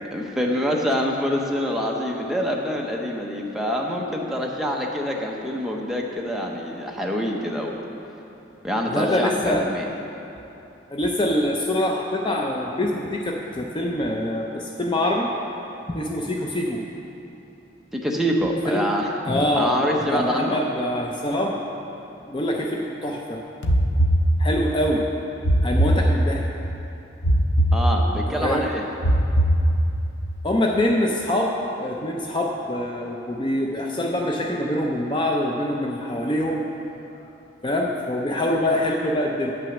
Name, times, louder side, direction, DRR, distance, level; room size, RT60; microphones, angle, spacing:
voice 1, 0.1-7.8 8.6-9.9 17.9-19.1 19.6-20.6 27.7-28.8, equal, ahead, -1 dB, 0.8 m, -25 dB
voice 2, 8.9-9.7 10.9-15.3 15.9-16.8 18.7-18.9 19.3-19.7 20.1-21.6 22.2-23.4 24.4-25.1 25.6-26.4 28.3-28.7 30.4-36.7 37.1-37.3 37.6-39.5, left 1 dB, 25° left, 0 dB, 0.5 m, -24 dB
sound 1, 23.6-24.8 25.4-26.6 27.2-28.4 29.0-30.2, right 1 dB, 75° left, 0.7 m, -20 dB
9.0 x 6.1 x 7.0 m, 2.9 s
head